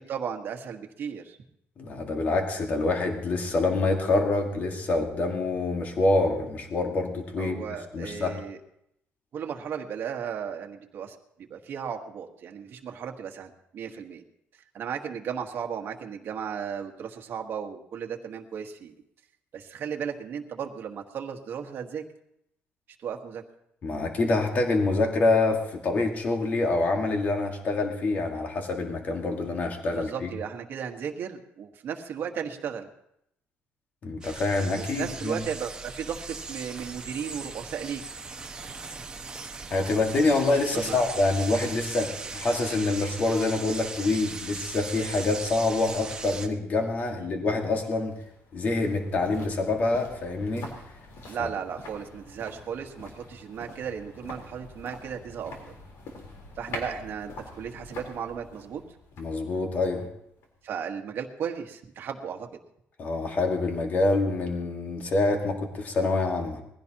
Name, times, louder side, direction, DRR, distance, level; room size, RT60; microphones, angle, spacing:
voice 1, 0.1-1.4 7.4-8.6 9.3-14.2 14.7-18.9 19.5-22.0 23.0-23.4 29.9-32.9 34.8-38.0 40.7-41.0 47.1-47.3 51.3-55.5 56.6-58.8 60.6-62.5, right 7 dB, 50° right, 3 dB, 1.4 m, -35 dB
voice 2, 1.8-7.6 7.9-8.4 23.8-30.3 34.0-35.4 39.7-48.1 48.5-50.7 51.4-51.5 59.2-60.1 63.0-66.6, left 2 dB, 40° left, 3 dB, 1.9 m, -26 dB
sound 1, 34.2-46.5, right 4 dB, 20° right, 1.0 m, -39 dB
sound 2, 47.5-60.7 61.0-61.1, left 2 dB, 75° left, 3.8 m, -45 dB
21.0 x 16.0 x 2.9 m, 0.76 s
cardioid pair, 170°, 5 cm